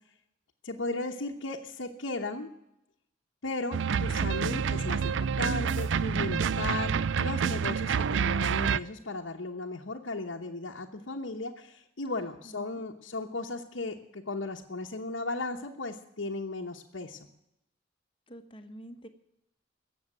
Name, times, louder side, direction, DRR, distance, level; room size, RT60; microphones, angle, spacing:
voice 1, 0.6-2.5 3.4-17.3, left 2 dB, 75° left, -1 dB, 1.1 m, -36 dB
sound 1, 3.7-8.8, right 6 dB, 70° right, 0.4 m, -28 dB
voice 2, 12.4-12.8 18.3-19.1, right 1 dB, 25° left, 7 dB, 1.2 m, -47 dB
17.0 x 7.3 x 9.1 m, 0.82 s
head